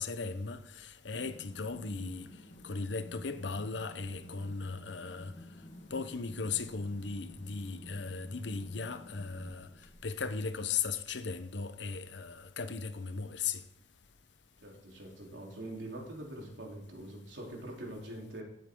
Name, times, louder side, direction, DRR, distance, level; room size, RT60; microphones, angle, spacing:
voice 1, 0.0-2.3 2.6-5.3 5.9-9.7 10.0-13.6, left 4 dB, 70° left, 0.9 m, -37 dB
sound 1, 1.1-10.3, left 1 dB, 45° left, 1.8 m, -53 dB
voice 2, 14.6-18.4, right 1 dB, 75° right, 3.7 m, -44 dB
18.0 x 8.3 x 3.9 m
head